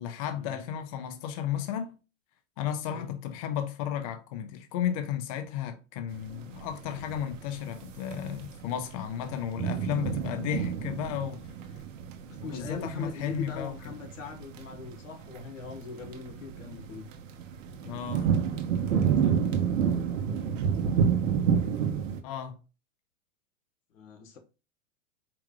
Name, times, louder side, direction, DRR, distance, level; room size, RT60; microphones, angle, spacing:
voice 1, 0.0-2.0 2.6-11.5 12.5-13.9 17.8-18.3 22.2-22.6, left 9 dB, 30° left, 0.4 m, -34 dB
sound 1, 6.2-22.2, right 7 dB, 80° right, 1.0 m, -30 dB
voice 2, 12.3-17.1 19.2-19.4 23.9-24.4, left 5 dB, 90° left, 1.5 m, -41 dB
4.7 x 2.4 x 3.6 m
supercardioid pair, 155°, 38 cm